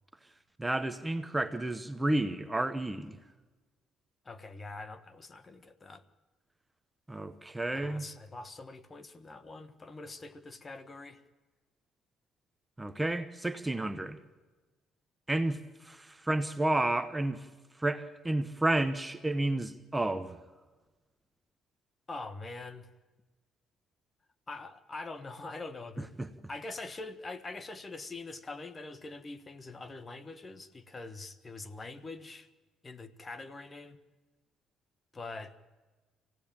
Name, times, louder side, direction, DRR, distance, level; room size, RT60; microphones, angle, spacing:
voice 1, 0.6-3.2 7.1-8.1 12.8-14.2 15.3-17.5 17.8-20.4 26.0-26.3, right 2 dB, 10° right, 1.1 m, -31 dB
voice 2, 4.2-6.0 7.8-11.2 22.1-22.9 24.5-26.1 26.5-32.5 32.8-34.0 35.1-35.6, left 3 dB, 30° left, 1.4 m, -44 dB
26.5 x 16.5 x 8.9 m
cardioid pair, 85°, 0 cm